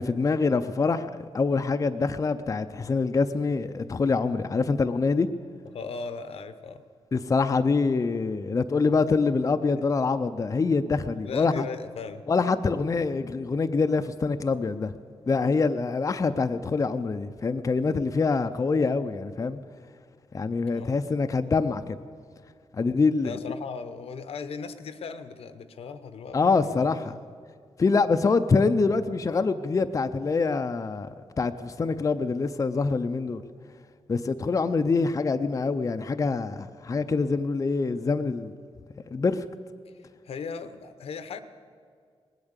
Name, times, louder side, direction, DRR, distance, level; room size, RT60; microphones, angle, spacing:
voice 1, 0.0-5.3 7.1-11.7 12.3-14.9 15.3-19.6 20.3-22.0 22.8-23.3 26.3-27.1 27.8-31.1 31.4-33.4 34.1-38.5 39.1-39.5, left 4 dB, 30° left, 0.5 m, -25 dB
voice 2, 5.7-6.8 11.1-12.2 20.7-20.9 23.2-26.4 26.6-27.2 40.2-41.4, left 5 dB, 75° left, 0.8 m, -38 dB
19.5 x 8.7 x 8.1 m
cardioid pair, 90°, 10 cm